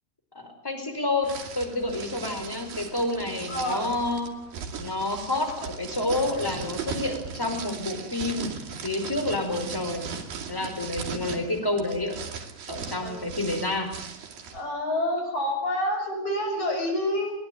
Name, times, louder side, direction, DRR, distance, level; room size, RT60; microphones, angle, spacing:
voice 1, 0.3-1.3 1.5-4.3 4.8-8.5 8.8-10.1 10.5-12.1 12.7-13.9, left 2 dB, 5° left, 6 dB, 4.2 m, -29 dB
sound 1, 1.2-14.6, right 6 dB, 50° right, 4.1 m, -38 dB
voice 2, 3.5-3.8 13.0-13.3 14.5-17.3, left 1 dB, 40° left, 3 dB, 7.7 m, -28 dB
23.5 x 20.5 x 9.2 m, 0.73 s
omnidirectional pair, 5.4 m